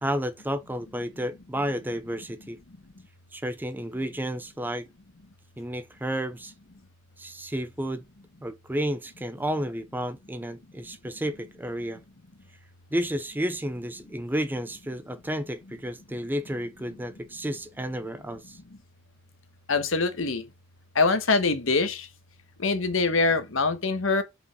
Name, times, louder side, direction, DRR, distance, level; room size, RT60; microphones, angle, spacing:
voice 1, 0.0-2.6 3.3-4.9 5.6-6.5 7.2-8.0 8.4-12.0 12.9-18.6, equal, 10° right, 0.5 m, -31 dB
voice 2, 19.7-20.4 20.9-22.1 22.6-24.2, left 3 dB, 65° left, 1.3 m, -24 dB
5.5 x 5.0 x 4.8 m
head